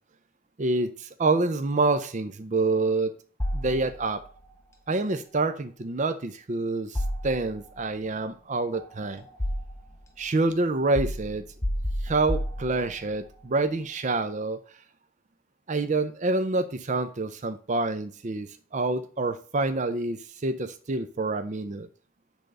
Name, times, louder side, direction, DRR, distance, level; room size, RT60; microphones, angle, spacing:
voice 1, 0.6-3.1 3.5-4.2 4.9-9.2 10.2-11.4 12.0-14.6 15.7-21.9, right 3 dB, 35° right, 9 dB, 0.5 m, -27 dB
sound 1, 3.4-4.3 6.9-7.8 8.7-10.0 10.9-13.2, equal, 15° left, 1.0 m, -31 dB
10.5 x 3.5 x 6.6 m, 0.43 s
head